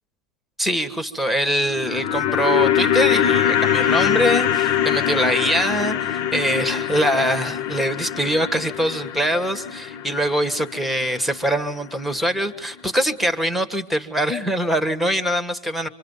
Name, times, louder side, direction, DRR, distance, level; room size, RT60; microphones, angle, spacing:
voice 1, 0.6-15.9, equal, ahead, 8 dB, 1.5 m, -23 dB
sound 1, 1.6-11.9 12.1-12.2, left 10 dB, 35° left, 1.1 m, -23 dB
26.5 x 25.5 x 5.6 m, 0.63 s
hypercardioid pair, 130°, 46 cm